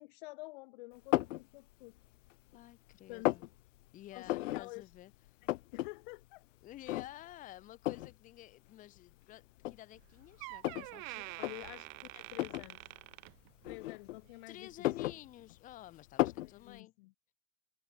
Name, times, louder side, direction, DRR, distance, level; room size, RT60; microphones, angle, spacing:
voice 1, 0.0-2.0 3.1-3.3 4.1-4.9 5.4-6.4 11.4-12.9 13.6-15.0 16.4-17.1, left 24 dB, 45° left, 3.1 m, -49 dB
sound 1, 1.1-1.4 2.0-2.6 2.9-3.5 4.3-4.6 5.0-5.1 5.3-5.9 6.2-6.3 6.9-7.3 7.9-8.1 9.0-9.1 9.6-10.9 11.3-11.5 12.3-12.7 13.6-14.3 14.7-15.7 16.2-16.5, left 16 dB, 85° left, 0.7 m, -33 dB
voice 2, 2.5-3.4 3.9-5.1 6.6-11.3 14.5-16.9, left 14 dB, 20° left, 2.4 m, -52 dB
Door, 9.9-10.1 10.4-13.9 14.2-14.5 15.3-15.4, right 33 dB, 35° right, 1.5 m, -47 dB
supercardioid pair, 175°, 37 cm